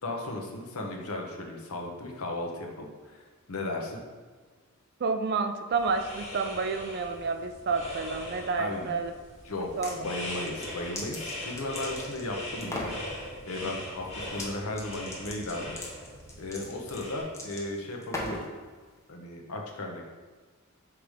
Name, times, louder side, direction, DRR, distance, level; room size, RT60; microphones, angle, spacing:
voice 1, 0.0-3.2 3.5-4.0 8.6-8.9 9.4-12.9 13.4-15.7 16.4-18.5 19.1-20.0, left 2 dB, 75° left, 1 dB, 1.0 m, -35 dB
voice 2, 5.0-9.1 9.8-10.1, right 4 dB, 45° right, 7 dB, 0.4 m, -30 dB
sound 1, 5.7-17.2, left 1 dB, 30° left, 1.3 m, -41 dB
sound 2, 9.6-10.0 10.4-12.3 12.6-13.0 14.3-14.5 14.8-18.5, left 1 dB, 15° left, 0.8 m, -38 dB
5.9 x 3.3 x 5.0 m, 1.5 s
head